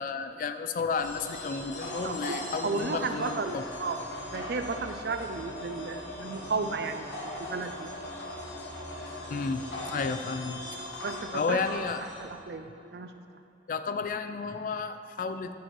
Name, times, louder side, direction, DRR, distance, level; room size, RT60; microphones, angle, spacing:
voice 1, 0.0-3.6 9.3-10.6 11.3-12.0 13.7-15.5, left 4 dB, 45° left, 9 dB, 0.3 m, -32 dB
sound 1, 1.0-12.3, left 1 dB, 90° left, 1.2 m, -39 dB
voice 2, 2.6-4.0 4.3-7.9 11.0-11.6 12.2-13.1, right 4 dB, 60° right, 8 dB, 0.4 m, -34 dB
10.5 x 4.4 x 4.5 m, 2.9 s
head